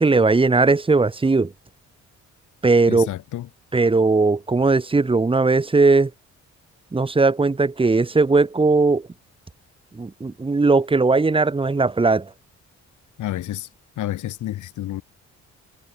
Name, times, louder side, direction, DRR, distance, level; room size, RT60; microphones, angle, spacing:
voice 1, 0.0-1.5 2.6-3.1 3.7-6.1 6.9-9.1 9.9-12.3, right 3 dB, 15° right, 1.5 m, -18 dB
voice 2, 2.9-3.5 13.2-13.7 14.0-15.0, left 13 dB, 75° left, 2.7 m, -29 dB
cardioid pair, 90°, 30 cm